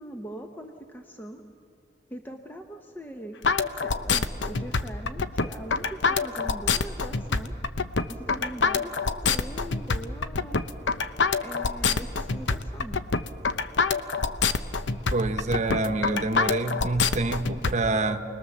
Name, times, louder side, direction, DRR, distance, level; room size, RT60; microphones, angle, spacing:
voice 1, 0.0-1.4 2.1-3.4 3.7-7.5 8.1-10.6 11.4-13.0, equal, 10° left, 4 dB, 0.9 m, -41 dB
sound 1, 3.4-17.7, left 4 dB, 70° left, 0.8 m, -25 dB
voice 2, 15.1-18.2, right 2 dB, 40° right, 8 dB, 1.0 m, -27 dB
28.5 x 20.5 x 7.2 m, 2.6 s
head